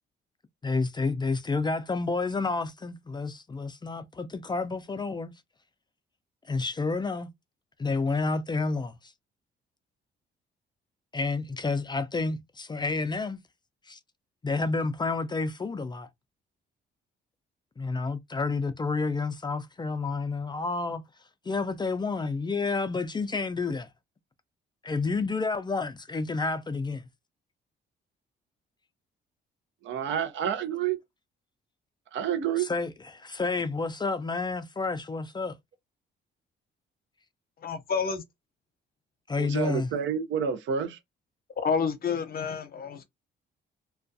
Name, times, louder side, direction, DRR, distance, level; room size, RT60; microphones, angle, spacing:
voice 1, 0.6-5.3 6.4-7.3 7.8-9.1 11.1-13.4 13.9-14.0 14.4-16.1 17.8-21.0 21.5-23.9 24.8-27.0 32.6-35.5 39.3-39.9, left 3 dB, 20° left, 0.4 m, -30 dB
voice 2, 29.8-31.0 32.1-32.7 39.4-41.0, right 8 dB, 70° right, 0.6 m, -29 dB
voice 3, 37.6-38.2 41.6-42.9, left 6 dB, 50° left, 0.7 m, -28 dB
2.3 x 2.2 x 2.6 m
cardioid pair, 90°, 20 cm